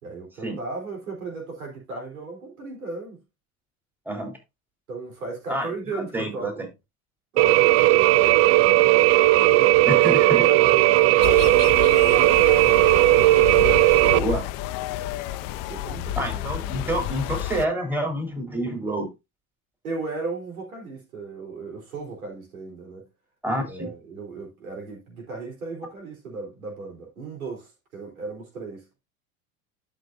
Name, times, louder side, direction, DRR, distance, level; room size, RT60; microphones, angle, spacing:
voice 1, 0.0-3.2 4.9-6.7 7.3-9.0 9.4-12.5 13.4-14.3 15.6-17.0 19.8-23.1 23.6-28.9, right 3 dB, 85° right, 3.8 m, -36 dB
voice 2, 5.5-6.5 9.9-10.4 14.1-14.4 16.2-19.1 23.4-23.9, right 1 dB, 5° right, 3.5 m, -28 dB
sound 1, 7.4-14.2, right 18 dB, 35° right, 0.4 m, -17 dB
sound 2, 11.2-17.7, left 13 dB, 50° left, 0.7 m, -30 dB
12.0 x 6.4 x 2.6 m
hypercardioid pair, 75°, 41 cm